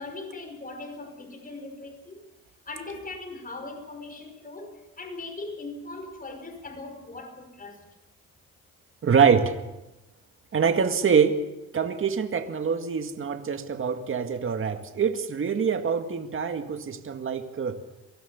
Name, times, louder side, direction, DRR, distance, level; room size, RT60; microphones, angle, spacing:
voice 1, 0.0-2.3 2.7-7.9, left 3 dB, 30° left, 4 dB, 5.7 m, -39 dB
voice 2, 9.0-9.6 10.5-11.4 11.7-17.8, right 6 dB, 45° right, 6 dB, 2.0 m, -24 dB
24.0 x 16.0 x 7.1 m, 0.99 s
cardioid pair, 90°, 30 cm